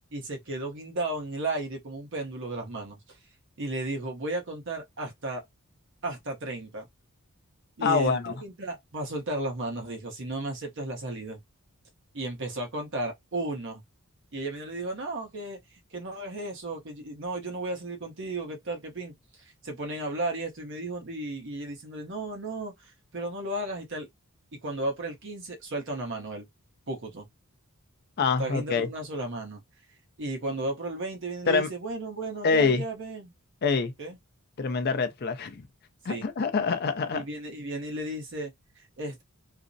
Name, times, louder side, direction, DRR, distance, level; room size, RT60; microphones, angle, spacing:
voice 1, 0.1-3.2 3.6-5.4 6.0-6.9 7.8-11.4 12.1-13.8 14.3-15.6 15.9-19.1 19.4-24.1 24.5-26.5 26.9-27.3 28.4-29.6 30.2-33.3 34.0-34.2 36.1-36.2 37.1-39.2, right 2 dB, 55° right, 0.8 m, -34 dB
voice 2, 7.8-8.3 28.2-28.9 31.5-31.7 32.4-32.8 33.6-33.9 34.6-35.7 36.1-37.2, left 5 dB, 45° left, 0.5 m, -25 dB
2.4 x 2.0 x 2.5 m
head